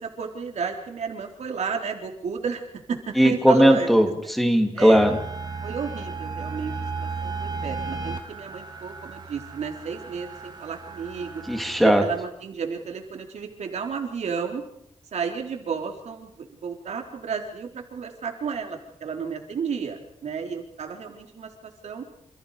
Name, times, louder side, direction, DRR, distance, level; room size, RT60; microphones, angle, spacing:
voice 1, 0.0-3.9 4.7-5.1 5.6-6.7 7.0-11.4 11.8-14.6 15.1-22.1, right 6 dB, 75° right, 3 dB, 4.0 m, -32 dB
voice 2, 3.2-5.1 11.5-12.0, equal, ahead, 4 dB, 2.8 m, -18 dB
sound 1, 4.9-12.2, right 4 dB, 40° right, 3.3 m, -35 dB
28.5 x 28.0 x 5.1 m, 0.71 s
wide cardioid pair, 135°, 12 cm